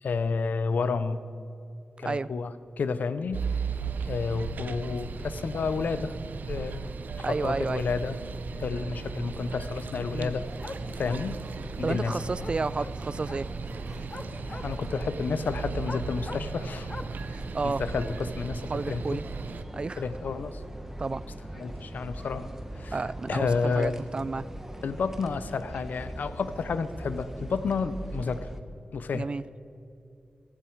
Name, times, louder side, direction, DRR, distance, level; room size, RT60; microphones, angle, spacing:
voice 1, 0.0-1.2 2.0-6.1 6.5-8.2 8.6-10.5 10.9-11.4 11.8-12.2 14.6-16.9 17.3-19.2 20.0-20.6 21.5-23.0 23.3-24.0 24.8-28.5 28.9-29.3, left 5 dB, 80° left, 12 dB, 0.7 m, -31 dB
sound 1, 3.3-19.6, right 5 dB, 80° right, 0.7 m, -36 dB
voice 2, 7.2-7.9 10.1-10.3 11.8-13.5 17.3-17.8 18.7-19.2 19.7-20.0 21.0-21.2 22.9-24.5 29.1-29.4, right 3 dB, 35° right, 18 dB, 0.3 m, -31 dB
sound 2, 9.7-10.3 10.6-18.5, left 3 dB, 35° left, 0.6 m, -45 dB
sound 3, 10.2-28.6, right 1 dB, 15° right, 1.3 m, -41 dB
16.0 x 15.0 x 4.7 m, 2.7 s
wide cardioid pair, 110°, 3 cm